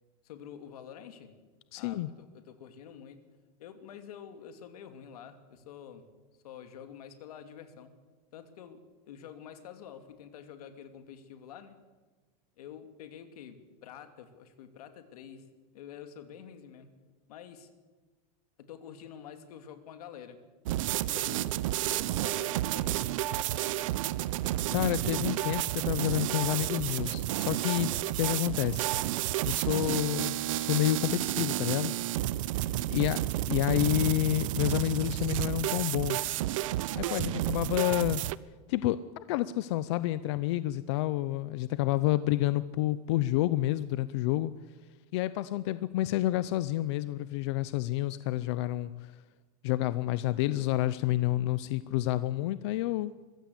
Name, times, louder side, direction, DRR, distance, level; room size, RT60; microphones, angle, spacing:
voice 1, 0.2-1.3 1.7-3.2 3.6-6.0 6.4-7.9 8.3-11.8 12.6-15.4 15.7-16.9 17.3-17.7 18.6-20.4 21.1-21.5 21.8-23.8 32.6-33.1, left 8 dB, 85° left, 8 dB, 2.6 m, -48 dB
voice 2, 1.7-2.1 24.7-27.9 28.2-28.9 29.5-31.9 32.9-36.3 36.9-38.2 38.7-44.5 45.1-49.1 49.6-53.1, left 15 dB, 50° left, 15 dB, 0.6 m, -29 dB
sound 1, 20.7-38.4, right 15 dB, 60° right, 0.7 m, -31 dB
22.5 x 15.5 x 8.2 m, 1.3 s
supercardioid pair, 180°, 19 cm